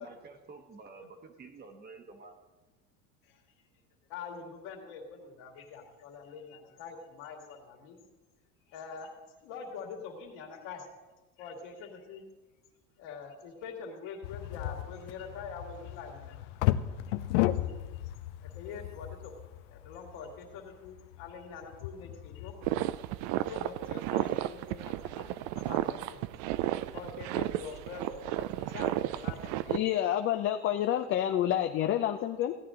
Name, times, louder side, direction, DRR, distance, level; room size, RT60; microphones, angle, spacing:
voice 1, 0.0-2.4, right 4 dB, 30° right, 6 dB, 1.1 m, -50 dB
voice 2, 4.1-8.0 8.7-9.1 9.4-10.9 11.4-12.2 13.0-16.4 17.1-17.8 18.4-19.3 19.7-22.5 23.4-26.2 26.9-29.5, left 5 dB, 65° left, 1 dB, 2.3 m, -44 dB
sound 1, 14.2-22.9, left 15 dB, 80° left, 0.6 m, -34 dB
sound 2, 22.6-29.8, right 15 dB, 50° right, 0.4 m, -33 dB
voice 3, 29.7-32.6, left 11 dB, 35° left, 6 dB, 0.5 m, -28 dB
16.0 x 9.3 x 3.8 m, 1.2 s
supercardioid pair, 130°, 35 cm